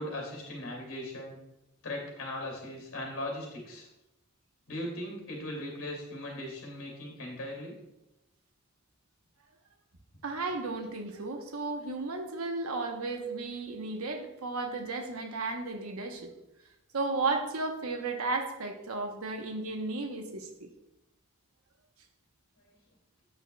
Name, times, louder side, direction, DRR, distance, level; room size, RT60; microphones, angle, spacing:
voice 1, 0.0-1.4 1.8-3.9 4.7-7.7, left 1 dB, 75° left, 0 dB, 2.4 m, -38 dB
voice 2, 10.2-16.3 16.9-20.7, right 3 dB, 85° right, 4 dB, 0.9 m, -34 dB
8.8 x 6.0 x 2.2 m, 0.90 s
head